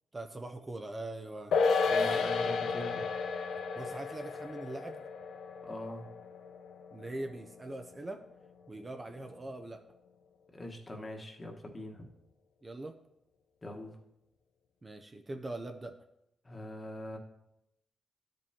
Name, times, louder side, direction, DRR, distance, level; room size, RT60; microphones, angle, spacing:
voice 1, 0.1-1.5 3.8-5.0 6.9-8.2 8.7-9.8 12.6-13.0 14.8-15.9, right 2 dB, 25° right, 6 dB, 0.5 m, -42 dB
sound 1, 1.5-8.2 8.5-8.6, left 4 dB, 85° left, 0.6 m, -33 dB
voice 2, 1.8-3.1 5.6-6.1 10.5-12.1 13.6-14.0 16.4-17.2, left 1 dB, 25° left, 2 dB, 1.3 m, -42 dB
12.5 x 5.3 x 2.8 m, 0.82 s
cardioid pair, 100°, 0 cm